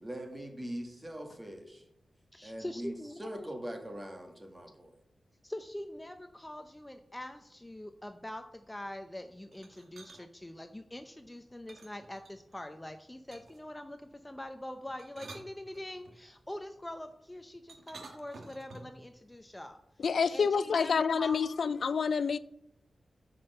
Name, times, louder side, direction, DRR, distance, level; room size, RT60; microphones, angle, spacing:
voice 1, 0.0-1.8 2.4-4.9, right 1 dB, 20° right, 2.0 m, -42 dB
voice 2, 2.3-3.5 5.4-19.8 20.3-21.7, left 1 dB, 15° left, 0.7 m, -44 dB
sound 1, 9.5-10.2 11.7-12.6 13.3-13.7 14.8-16.2 17.7-19.0, right 3 dB, 75° right, 1.6 m, -51 dB
voice 3, 20.0-22.4, left 6 dB, 75° left, 0.4 m, -28 dB
9.8 x 5.4 x 6.8 m
wide cardioid pair, 90°, 0 cm